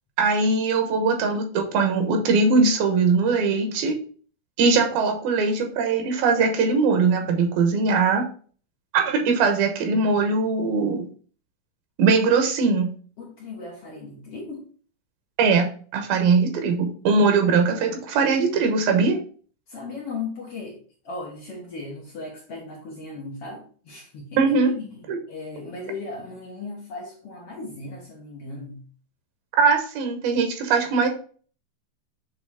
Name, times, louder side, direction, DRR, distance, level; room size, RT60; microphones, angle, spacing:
voice 1, 0.2-4.0 4.6-8.2 8.9-11.1 12.0-12.9 15.4-19.2 24.4-24.7 25.1-25.2 29.6-31.1, right 4 dB, 90° right, 4 dB, 2.9 m, -21 dB
voice 2, 13.2-14.7 16.6-16.7 19.7-20.8 21.0-24.4 24.7-28.8, left 3 dB, 55° left, -2 dB, 1.7 m, -37 dB
8.0 x 3.4 x 3.5 m, 0.43 s
omnidirectional pair, 4.2 m